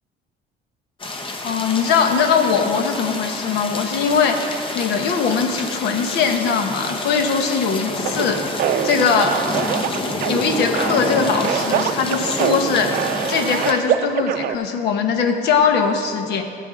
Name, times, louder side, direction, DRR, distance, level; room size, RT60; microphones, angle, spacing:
sound 1, 1.0-13.7, left 2 dB, 30° left, 1.0 m, -28 dB
voice 1, 1.4-9.9 10.3-16.4, left 6 dB, 80° left, 6 dB, 1.1 m, -21 dB
sound 2, 8.1-14.6, right 10 dB, 60° right, 0.5 m, -24 dB
13.0 x 8.2 x 5.1 m, 2.6 s
cardioid pair, 110°, 17 cm